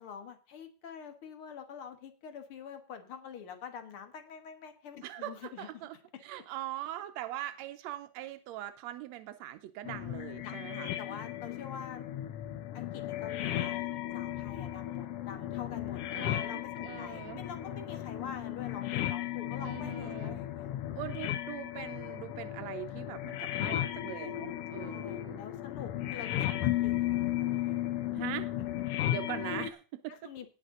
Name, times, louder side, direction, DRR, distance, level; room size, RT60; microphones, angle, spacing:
voice 1, 0.0-5.7 10.4-12.0 12.7-13.9 14.1-20.7 24.8-27.8 30.1-30.5, left 7 dB, 50° left, 7 dB, 1.8 m, -46 dB
voice 2, 5.0-6.0 6.2-10.9 16.1-17.4 19.6-20.4 21.0-25.4 28.1-28.5 29.1-30.3, right 14 dB, 85° right, 9 dB, 1.6 m, -42 dB
sound 1, 9.9-29.7, left 13 dB, 90° left, 1.3 m, -35 dB
18.0 x 6.5 x 3.8 m, 0.37 s
omnidirectional pair, 3.8 m